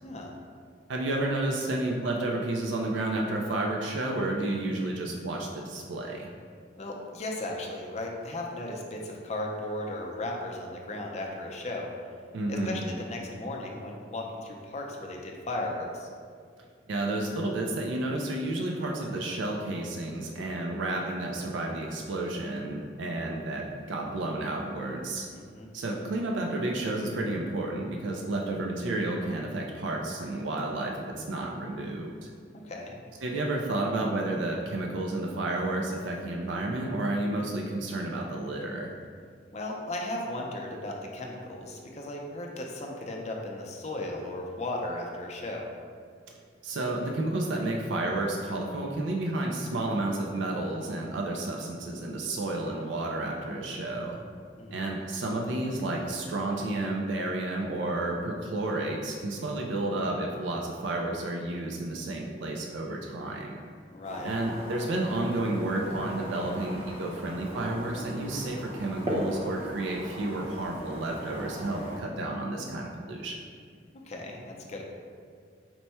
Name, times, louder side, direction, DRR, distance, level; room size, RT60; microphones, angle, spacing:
voice 1, 0.0-0.3 6.8-11.9 12.5-16.1 25.3-25.7 32.6-32.9 39.5-45.6 54.6-54.8 63.9-64.3 74.1-74.8, left 1 dB, 40° left, 0 dB, 0.5 m, -36 dB
voice 2, 0.9-6.3 12.3-12.8 16.9-25.3 25.7-32.3 33.2-38.9 46.6-54.2 54.7-63.6 64.2-73.4, right 2 dB, 80° right, 0 dB, 0.4 m, -31 dB
sound 1, 64.0-72.0, equal, 30° right, 0.7 m, -38 dB
4.4 x 2.2 x 4.2 m, 2.1 s
head